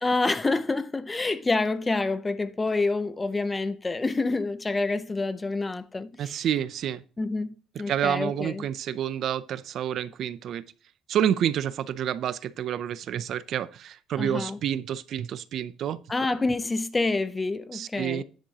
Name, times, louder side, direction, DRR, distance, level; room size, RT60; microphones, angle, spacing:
voice 1, 0.0-6.4 7.2-8.7 14.2-14.6 16.1-18.2, left 3 dB, 15° left, 0.6 m, -27 dB
voice 2, 6.2-7.0 7.9-10.6 11.1-16.0 17.7-18.2, right 10 dB, 55° right, 0.4 m, -29 dB
10.0 x 7.5 x 2.8 m
cardioid pair, 125°, 0 cm